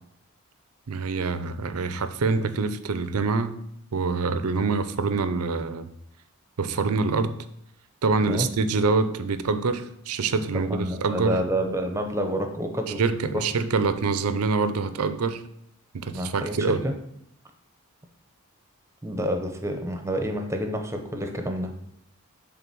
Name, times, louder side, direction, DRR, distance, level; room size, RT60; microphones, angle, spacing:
voice 1, 0.9-3.6 3.9-5.9 6.6-7.4 8.0-11.4 13.0-15.4 15.9-16.8, right 4 dB, 80° right, 0.6 m, -25 dB
voice 2, 10.5-13.0 16.1-16.9 19.0-21.7, equal, 15° right, 0.8 m, -28 dB
6.9 x 3.9 x 6.1 m
head